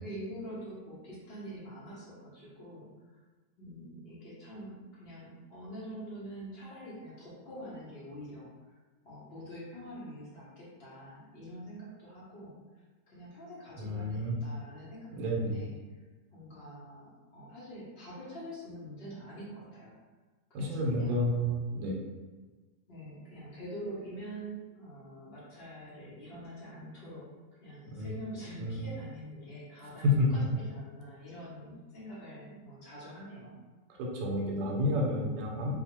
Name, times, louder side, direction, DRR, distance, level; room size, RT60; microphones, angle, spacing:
voice 1, 0.0-3.2 3.6-8.8 9.0-12.5 13.1-15.7 16.3-20.0 20.6-21.2 22.9-27.3 27.6-33.6, equal, 55° left, -7 dB, 0.7 m, -45 dB
voice 2, 13.8-14.4 15.1-15.6 20.5-22.0 27.9-28.1 28.6-28.8 30.2-30.3 34.0-35.7, equal, 85° right, -2 dB, 1.2 m, -31 dB
2.9 x 2.0 x 2.9 m, 1.3 s
omnidirectional pair, 1.9 m